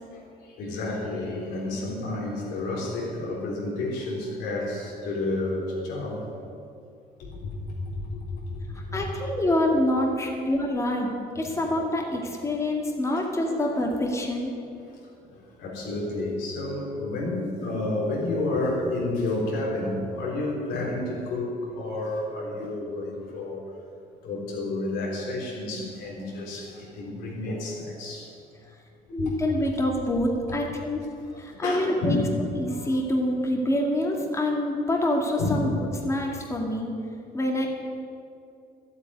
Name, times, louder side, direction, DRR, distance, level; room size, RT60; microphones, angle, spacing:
voice 1, 0.1-6.2 7.2-8.6 8.9-9.1 13.1-13.2 13.5-13.6 14.9-15.0 15.3-23.6 24.2-28.3 29.1-29.2 31.2-32.2 32.8-32.9 35.4-35.7, left 2 dB, 90° left, -3 dB, 3.9 m, -30 dB
voice 2, 8.9-11.1 11.4-14.5 29.1-31.0 31.3-32.2 32.6-35.7 36.0-36.9 37.3-37.7, left 1 dB, 15° left, 0 dB, 2.1 m, -26 dB
12.0 x 8.3 x 9.8 m, 2.5 s
cardioid pair, 110°, 17 cm